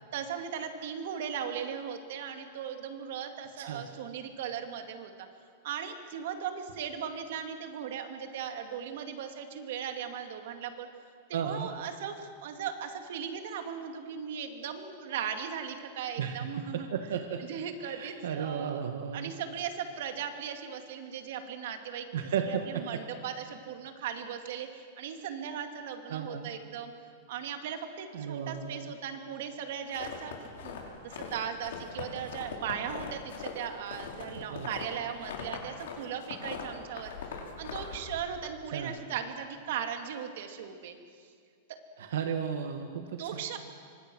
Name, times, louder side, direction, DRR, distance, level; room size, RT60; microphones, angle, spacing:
voice 1, 0.1-5.3 5.6-10.9 11.3-16.9 17.4-18.8 19.1-22.1 22.5-26.9 27.3-41.3 43.2-43.6, right 8 dB, 60° right, 6 dB, 2.5 m, -38 dB
voice 2, 11.3-11.7 16.2-16.5 16.9-17.4 17.8-19.3 22.1-22.8 26.1-26.5 28.1-28.9 34.5-34.7 38.7-39.0 42.0-43.4, right 7 dB, 85° right, 5 dB, 1.8 m, -34 dB
sound 1, 29.9-31.4 31.6-36.0 36.2-38.2, left 6 dB, 80° left, 5.1 m, -40 dB
26.0 x 24.5 x 6.3 m, 2.1 s
supercardioid pair, 165°, 0 cm